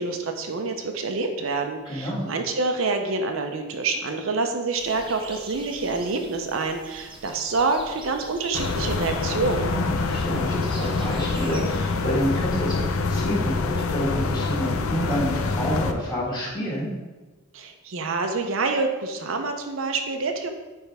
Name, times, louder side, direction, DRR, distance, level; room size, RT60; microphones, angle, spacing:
voice 1, 0.0-9.7 17.5-20.5, right 3 dB, 70° right, 5 dB, 0.6 m, -27 dB
voice 2, 1.9-2.3 9.7-16.9, equal, 20° left, -7 dB, 1.8 m, -28 dB
sound 1, 4.8-11.6, right 3 dB, 25° right, 0.6 m, -43 dB
sound 2, 8.5-15.9, left 4 dB, 85° left, 0.5 m, -26 dB
8.9 x 3.4 x 3.4 m, 1.2 s
head